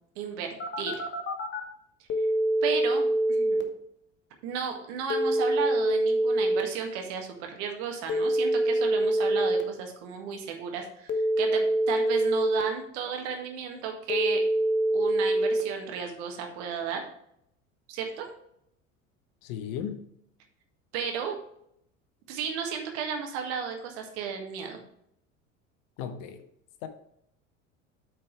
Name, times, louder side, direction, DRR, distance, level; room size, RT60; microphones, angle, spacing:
voice 1, 0.2-1.0 2.2-2.3 2.6-3.6 4.4-14.4 14.9-17.0 17.9-18.3 20.9-21.4 22.3-24.8, right 6 dB, 60° right, 3 dB, 1.8 m, -34 dB
Telephone, 0.6-1.6 2.1-3.6 5.1-6.6 8.1-9.6 11.1-12.6 14.1-15.6, right 1 dB, 30° left, 1.2 m, -25 dB
voice 2, 19.4-20.0 26.0-26.4 26.8-26.9, left 8 dB, 55° left, 9 dB, 1.0 m, -35 dB
8.9 x 4.7 x 4.6 m, 0.73 s
figure-of-eight pair, 70°, 39 cm